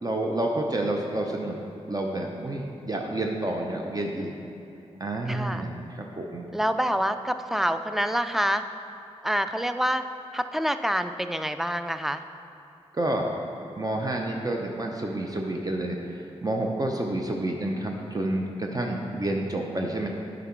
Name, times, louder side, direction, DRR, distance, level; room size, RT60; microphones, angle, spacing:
voice 1, 0.0-1.6 1.9-4.3 5.0-6.5 12.9-13.3 13.7-20.1, right 1 dB, 30° right, 1 dB, 0.8 m, -29 dB
voice 2, 5.3-5.7 6.5-8.6 9.2-10.0 10.3-12.2, equal, 5° right, 9 dB, 0.4 m, -26 dB
8.0 x 5.2 x 4.5 m, 2.7 s
cardioid pair, 45°, 12 cm